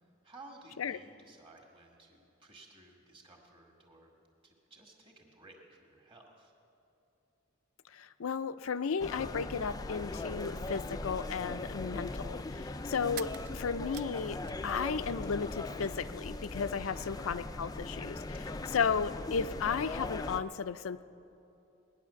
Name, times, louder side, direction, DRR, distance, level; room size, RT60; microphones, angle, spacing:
voice 1, 0.2-4.1 4.4-6.5 16.9-17.1 18.4-18.8, right 2 dB, 25° right, 0 dB, 2.0 m, -56 dB
voice 2, 7.9-14.4 14.6-21.0, left 6 dB, 85° left, 13 dB, 0.5 m, -34 dB
sound 1, 9.0-20.4, left 2 dB, 20° left, 0.4 m, -40 dB
sound 2, 13.1-15.0 15.3-16.2, right 12 dB, 50° right, 0.4 m, -49 dB
20.0 x 10.0 x 7.0 m, 2.8 s
head